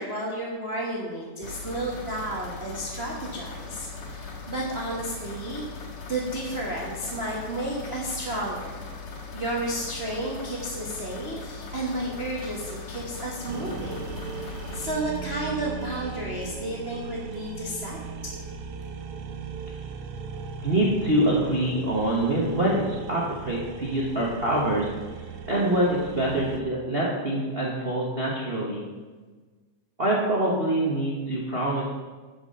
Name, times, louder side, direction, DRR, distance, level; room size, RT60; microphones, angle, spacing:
voice 1, 0.0-5.6 6.0-8.8 9.3-18.0, right 1 dB, 40° right, -3 dB, 0.8 m, -32 dB
sound 1, 1.4-14.9, left 4 dB, 70° left, 2.6 m, -40 dB
sound 2, 13.5-26.6, right 5 dB, 75° right, 1.5 m, -38 dB
voice 2, 20.6-24.9 25.2-28.8 30.0-31.8, right 1 dB, 90° right, -4 dB, 0.5 m, -25 dB
11.0 x 6.0 x 5.5 m, 1.4 s
omnidirectional pair, 3.4 m